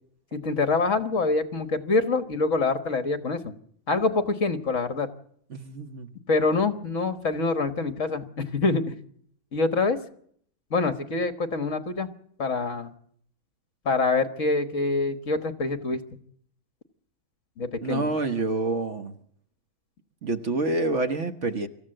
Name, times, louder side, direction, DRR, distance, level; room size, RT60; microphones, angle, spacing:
voice 1, 0.3-3.5 3.9-5.1 6.3-8.9 9.5-10.0 10.7-12.1 12.4-12.9 13.8-16.0 17.6-18.1, left 3 dB, 60° left, 1.6 m, -25 dB
voice 2, 5.5-6.1 17.8-19.2 20.2-21.7, right 2 dB, 55° right, 1.5 m, -27 dB
25.5 x 14.5 x 7.8 m
omnidirectional pair, 1.5 m